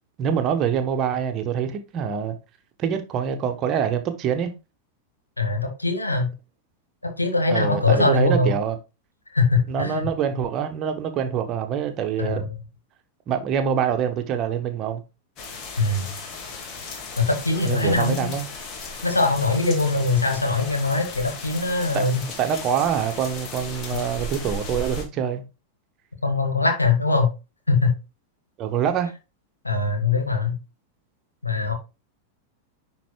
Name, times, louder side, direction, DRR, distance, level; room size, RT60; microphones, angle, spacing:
voice 1, 0.2-2.4 2.8-4.5 7.5-8.8 9.7-12.5 13.3-15.0 17.6-18.5 21.9-22.0 22.4-25.4 28.6-29.1, right 8 dB, 35° right, 1.1 m, -25 dB
voice 2, 5.4-6.3 7.0-8.6 9.3-10.1 12.2-12.5 15.8-16.1 17.2-18.4 19.0-22.2 26.2-27.3 27.7-27.9 29.6-30.6 31.4-31.7, left 3 dB, 80° left, 1.7 m, -22 dB
sound 1, 15.4-25.0, left 3 dB, 35° left, 1.9 m, -36 dB
10.5 x 4.2 x 2.3 m
figure-of-eight pair, 90°, 0 cm